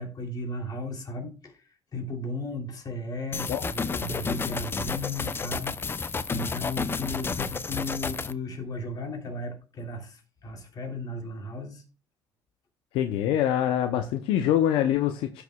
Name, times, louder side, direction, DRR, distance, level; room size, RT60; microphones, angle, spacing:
voice 1, 0.0-1.6 1.9-11.8, left 2 dB, 50° left, 3.0 m, -35 dB
sound 1, 3.3-8.3, left 4 dB, 25° left, 0.5 m, -31 dB
voice 2, 12.9-15.4, left 11 dB, 85° left, 0.6 m, -24 dB
15.5 x 6.7 x 2.3 m
cardioid pair, 90°, 9 cm